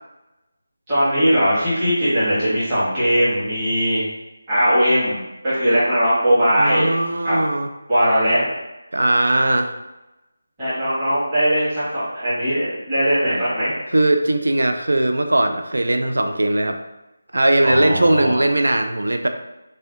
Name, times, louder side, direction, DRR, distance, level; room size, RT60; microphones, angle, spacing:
voice 1, 0.9-4.0 4.5-5.2 5.4-6.9 7.2-7.4 7.9-8.6 10.6-13.8 17.6-18.4, equal, 15° right, -15 dB, 1.1 m, -19 dB
voice 2, 6.6-7.7 8.9-9.7 13.9-16.8 17.3-19.3, right 1 dB, 85° right, 6 dB, 0.3 m, -19 dB
2.6 x 2.1 x 3.5 m, 0.99 s
figure-of-eight pair, 170°, 0 cm